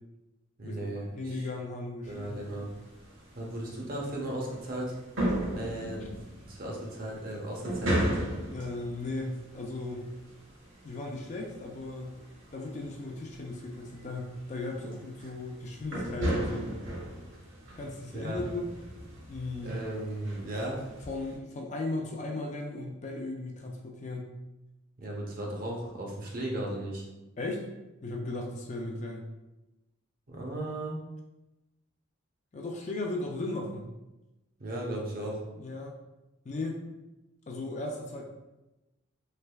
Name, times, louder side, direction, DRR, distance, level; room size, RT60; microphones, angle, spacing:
voice 1, 0.6-1.5 2.1-2.7 3.3-5.0 5.5-8.1 15.2-15.3 18.1-18.4 19.6-20.8 25.0-27.0 30.3-31.0 34.6-35.4, right 1 dB, 45° right, -1 dB, 0.6 m, -36 dB
voice 2, 1.1-2.4 8.5-10.1 10.8-12.2 12.5-16.7 17.8-18.7 19.3-19.7 21.1-24.3 27.4-27.7 28.0-29.2 32.5-33.9 35.6-35.9 36.5-36.8 37.5-38.3, left 2 dB, 35° left, 1 dB, 0.4 m, -36 dB
sound 1, 2.0-21.4, right 1 dB, 65° right, 1.3 m, -37 dB
3.3 x 3.1 x 2.2 m, 1.0 s
head